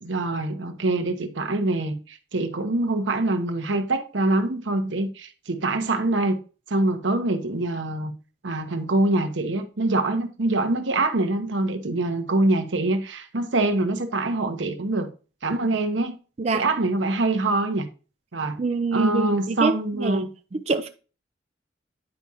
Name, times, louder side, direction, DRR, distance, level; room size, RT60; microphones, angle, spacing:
voice 1, 0.0-6.4 6.7-8.1 8.4-15.1 15.4-16.2 16.5-17.9 18.3-18.6 18.9-20.3, right 2 dB, 85° right, 0.9 m, -24 dB
voice 2, 18.6-20.2 20.5-20.9, right 3 dB, 35° right, 0.4 m, -25 dB
9.8 x 4.8 x 2.7 m
head